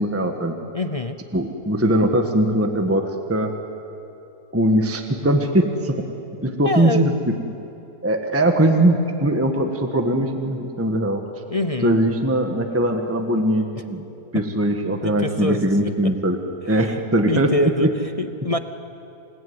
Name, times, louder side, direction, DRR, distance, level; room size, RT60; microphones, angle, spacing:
voice 1, 0.0-0.6 1.3-3.5 4.5-6.1 6.4-7.4 8.0-11.2 11.8-14.0 14.3-16.4 16.7-17.5 17.8-17.9, right 1 dB, 10° right, 5 dB, 1.5 m, -20 dB
voice 2, 0.7-1.2 6.6-7.1 11.5-11.9 14.3-14.4 15.0-16.1 16.7-16.9 17.3-18.6, left 1 dB, 40° left, 9 dB, 0.5 m, -25 dB
28.0 x 19.0 x 9.6 m, 3.0 s
omnidirectional pair, 1.7 m